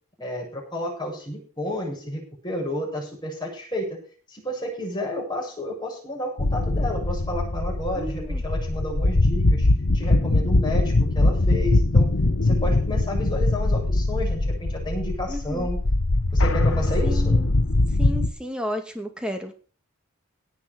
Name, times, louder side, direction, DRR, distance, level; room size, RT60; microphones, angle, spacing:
voice 1, 0.2-4.0 4.3-9.7 9.9-12.1 12.4-15.8 16.3-17.4, left 1 dB, 20° left, -1 dB, 7.4 m, -31 dB
sound 1, 6.4-18.3, left 2 dB, 75° left, 1.1 m, -22 dB
voice 2, 8.0-8.4 15.3-15.7 17.0-17.5 18.0-19.5, equal, 5° right, 5 dB, 2.2 m, -32 dB
18.0 x 6.2 x 6.3 m, 0.39 s
head